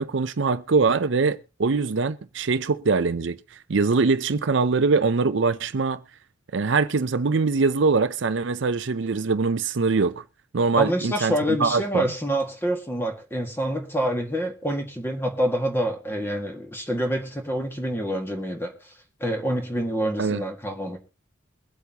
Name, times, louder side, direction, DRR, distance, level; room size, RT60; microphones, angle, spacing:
voice 1, 0.0-3.4 3.7-6.0 6.5-10.2 10.5-12.1 20.2-20.4, right 4 dB, 65° right, 0.6 m, -23 dB
voice 2, 10.8-18.9 19.2-21.0, equal, 10° left, 1.9 m, -27 dB
23.0 x 8.2 x 2.9 m
head